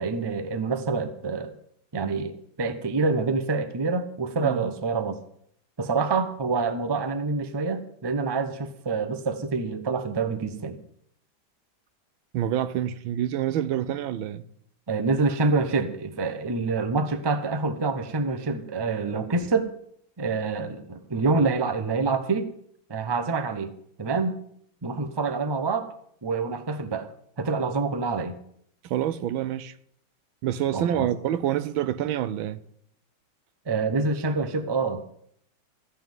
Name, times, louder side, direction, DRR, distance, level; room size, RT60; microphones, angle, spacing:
voice 1, 0.0-1.5 1.9-5.2 5.8-10.8 14.9-19.7 20.2-22.5 22.9-23.7 24.0-24.3 24.8-25.9 26.2-27.1 27.4-28.4 30.7-31.1 33.7-35.0, right 4 dB, 25° right, 0.5 m, -26 dB
voice 2, 12.3-14.4 28.8-29.7 30.4-32.6, right 11 dB, 85° right, 1.5 m, -27 dB
15.0 x 5.8 x 9.0 m
omnidirectional pair, 2.1 m